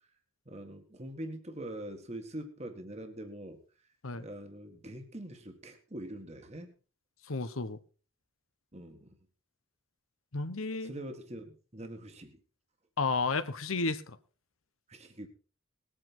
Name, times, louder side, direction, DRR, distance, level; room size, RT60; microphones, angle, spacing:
voice 1, 0.4-3.6 4.1-6.7 8.7-9.2 10.8-12.4 14.9-15.3, right 1 dB, 30° right, 1.8 m, -43 dB
voice 2, 7.3-7.8 10.3-10.9 13.0-14.2, left 3 dB, 85° left, 1.1 m, -32 dB
19.5 x 8.9 x 4.4 m
head